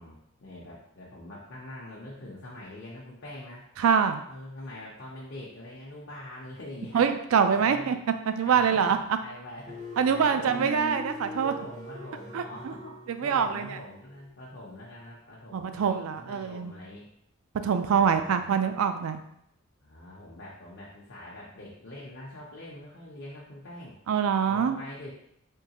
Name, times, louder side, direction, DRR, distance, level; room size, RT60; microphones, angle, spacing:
voice 1, 0.0-3.6 4.3-7.0 7.6-10.8 11.4-17.0 17.8-18.5 19.8-24.0 24.4-25.1, left 1 dB, 55° left, -5 dB, 0.7 m, -44 dB
voice 2, 3.8-4.2 6.9-8.0 8.3-9.0 10.0-11.5 12.3-12.7 13.2-13.8 15.5-16.7 17.6-19.2 24.1-24.8, right 7 dB, 85° right, 9 dB, 0.4 m, -25 dB
sound 1, 9.7-14.3, right 1 dB, 35° right, 0.6 m, -42 dB
3.7 x 3.1 x 2.9 m, 0.75 s
head